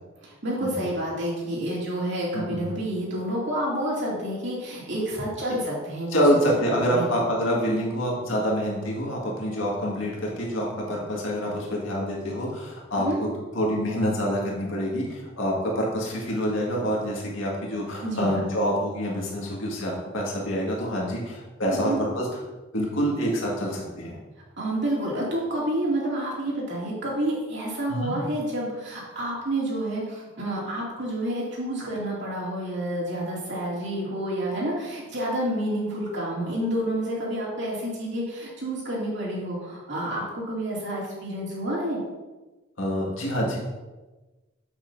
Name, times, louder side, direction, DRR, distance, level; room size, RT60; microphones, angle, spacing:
voice 1, 0.2-7.3 13.0-13.2 18.0-18.4 21.7-22.0 24.6-42.0, right 1 dB, 60° right, -5 dB, 2.7 m, -29 dB
voice 2, 6.1-13.3 13.5-22.3 22.7-24.2 27.9-28.2 42.8-43.6, equal, 70° left, -3 dB, 2.0 m, -26 dB
8.3 x 7.8 x 2.7 m, 1.2 s
head